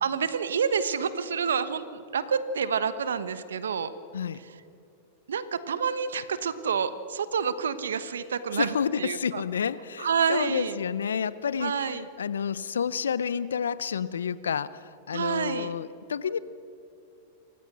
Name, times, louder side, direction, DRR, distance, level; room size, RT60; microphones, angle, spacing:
voice 1, 0.0-3.9 5.3-9.4 10.0-10.8 11.6-12.0 15.1-15.7, right 6 dB, 80° right, 14 dB, 1.2 m, -28 dB
voice 2, 8.5-16.4, left 7 dB, 85° left, 18 dB, 0.7 m, -30 dB
28.5 x 15.5 x 6.2 m, 2.8 s
hypercardioid pair, 105°, 0 cm